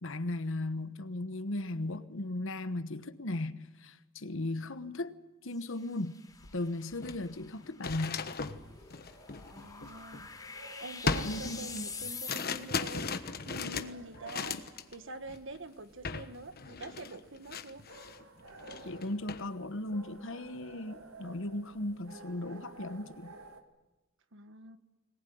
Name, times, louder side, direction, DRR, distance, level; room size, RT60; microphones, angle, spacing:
voice 1, 0.0-5.2 5.4-6.2 6.5-8.2 11.2-11.9 18.8-23.3, left 2 dB, 65° left, 1.2 m, -37 dB
sound 1, 5.5-12.9, left 5 dB, 20° left, 3.6 m, -46 dB
sound 2, 6.4-6.5 6.9-10.5 11.1-14.9 15.3-15.6 16.0-16.3 16.6-18.2 18.6-19.4, left 4 dB, 50° left, 1.2 m, -37 dB
sound 3, 8.2-23.6, right 2 dB, 80° right, 2.5 m, -54 dB
voice 2, 9.5-10.3 10.8-14.6 14.9-17.8 24.3-24.8, right 2 dB, 65° right, 1.6 m, -46 dB
22.0 x 20.0 x 9.4 m
head